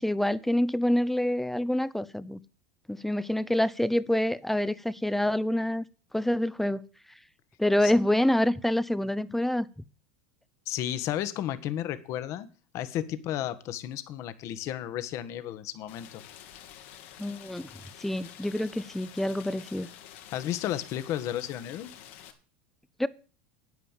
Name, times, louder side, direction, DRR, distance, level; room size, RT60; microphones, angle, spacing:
voice 1, 0.0-2.4 2.9-5.8 6.1-6.9 7.6-9.7 17.2-17.7 18.0-19.9 23.0-23.1, left 1 dB, 5° left, 0.6 m, -26 dB
voice 2, 10.7-12.5 12.7-16.2 20.3-21.9, left 12 dB, 50° left, 1.4 m, -33 dB
Rain, 15.9-22.3, left 10 dB, 75° left, 2.5 m, -49 dB
9.5 x 9.2 x 7.4 m
supercardioid pair, 125°, 7 cm